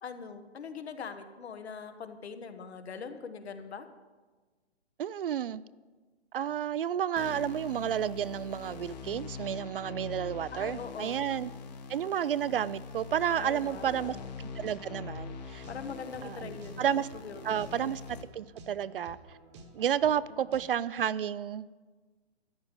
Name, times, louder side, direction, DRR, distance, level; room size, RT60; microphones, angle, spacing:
voice 1, 0.0-3.9 10.5-11.2 13.4-14.2 15.7-16.8 17.2-17.8 20.3-20.4, left 5 dB, 70° left, 9 dB, 1.4 m, -42 dB
voice 2, 5.0-5.6 6.3-11.5 11.9-15.6 16.2-17.1 17.4-19.2 19.7-21.7, right 9 dB, 55° right, 18 dB, 0.4 m, -31 dB
sound 1, 7.2-18.2, left 5 dB, 40° left, 1.2 m, -44 dB
sound 2, 13.8-20.6, right 3 dB, 25° right, 1.1 m, -52 dB
13.0 x 10.0 x 5.3 m, 1.3 s
hypercardioid pair, 160°, 33 cm